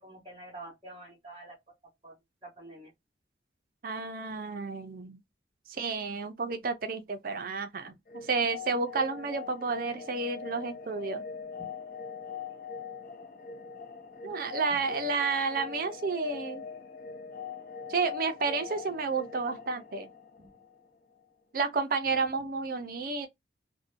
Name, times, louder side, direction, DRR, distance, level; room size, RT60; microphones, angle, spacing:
voice 1, 0.0-1.6 2.0-2.1 2.4-2.9 11.6-11.7 14.7-14.8 20.4-20.5, right 2 dB, 30° right, 0.9 m, -47 dB
voice 2, 3.8-5.2 5.7-11.2 14.2-16.6 17.9-20.1 21.5-23.3, right 4 dB, 50° right, 0.5 m, -31 dB
sound 1, 8.1-20.8, left 6 dB, 50° left, 0.5 m, -42 dB
2.6 x 2.1 x 2.5 m
head